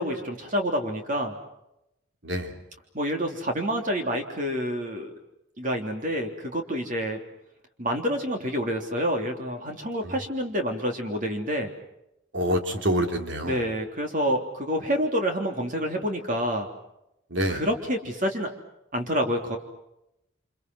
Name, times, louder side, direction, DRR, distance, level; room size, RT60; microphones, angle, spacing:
voice 1, 0.0-1.3 2.9-5.1 5.6-7.2 7.8-11.7 13.4-16.7 17.5-18.5 18.9-19.6, equal, 40° right, 3 dB, 3.4 m, -28 dB
voice 2, 2.2-2.6 10.0-10.1 12.3-13.6 17.3-17.6, equal, 65° right, 5 dB, 3.3 m, -26 dB
29.0 x 27.5 x 6.3 m, 0.85 s
head